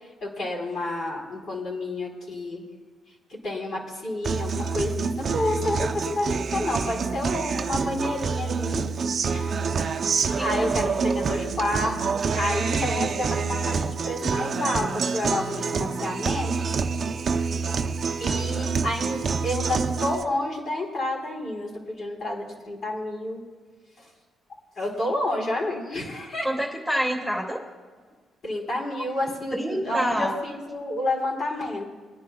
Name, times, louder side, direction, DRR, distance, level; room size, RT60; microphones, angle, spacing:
voice 1, 0.2-2.7 3.3-8.8 9.3-9.6 10.1-16.5 18.2-23.4 24.0-24.1 24.8-26.5 28.4-31.9, left 1 dB, 55° left, -3 dB, 4.3 m, -29 dB
Guitar, 4.2-20.2, right 5 dB, 50° right, 0.6 m, -27 dB
voice 2, 10.4-10.7 26.4-27.6 28.9-29.0 29.5-30.4, equal, 5° left, -2 dB, 2.2 m, -27 dB
24.0 x 10.5 x 2.3 m, 1.5 s
cardioid pair, 90°, 0 cm